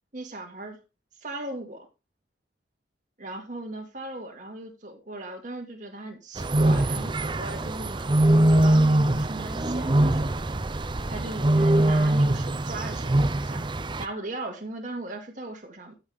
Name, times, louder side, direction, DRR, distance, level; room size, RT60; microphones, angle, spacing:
voice 1, 0.1-0.8 1.2-1.9 3.2-8.1 8.5-10.6 11.1-13.7 14.0-16.0, right 2 dB, 45° right, 2.2 m, -38 dB
sound 1, 6.4-14.0, right 1 dB, 25° right, 0.5 m, -22 dB
13.5 x 6.0 x 3.6 m
head